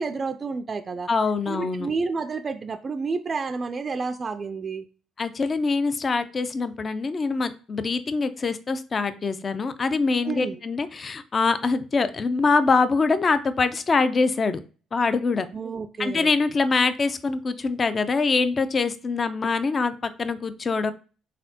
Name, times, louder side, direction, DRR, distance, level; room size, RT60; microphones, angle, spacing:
voice 1, 0.0-1.1 1.5-4.8 10.2-10.6 15.5-16.3, right 4 dB, 40° right, 0.3 m, -30 dB
voice 2, 1.1-1.9 5.2-14.6 14.9-15.5 16.0-19.9 20.2-20.9, left 4 dB, 40° left, 0.4 m, -24 dB
4.1 x 3.5 x 2.7 m
supercardioid pair, 65°, 0 cm